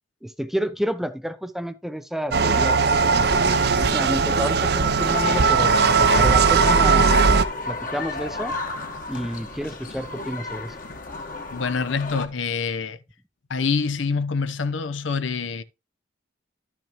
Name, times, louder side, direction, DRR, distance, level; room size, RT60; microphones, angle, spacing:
voice 1, 0.2-2.8 3.2-5.8 6.2-7.2 7.7-8.6 9.1-10.8, equal, ahead, 0.5 m, -30 dB
sound 1, 2.3-7.4, right 5 dB, 55° right, 0.6 m, -19 dB
sound 2, 5.0-12.3, left 3 dB, 45° left, 1.3 m, -30 dB
voice 2, 11.5-13.0 13.5-15.6, left 5 dB, 75° left, 0.7 m, -26 dB
12.0 x 5.9 x 3.0 m
head